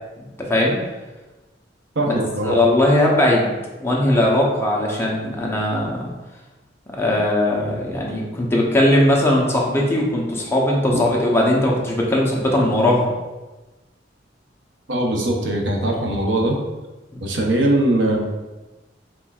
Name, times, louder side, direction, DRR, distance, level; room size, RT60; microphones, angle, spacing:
voice 1, 0.4-0.8 2.0-2.1 2.4-3.5 3.8-6.1 7.0-13.1 17.1-17.2, left 1 dB, 15° left, -3 dB, 0.7 m, -19 dB
voice 2, 2.0-2.6 14.9-16.6 17.2-18.2, right 1 dB, 75° right, 1 dB, 0.7 m, -20 dB
4.4 x 4.3 x 2.4 m, 1.1 s
head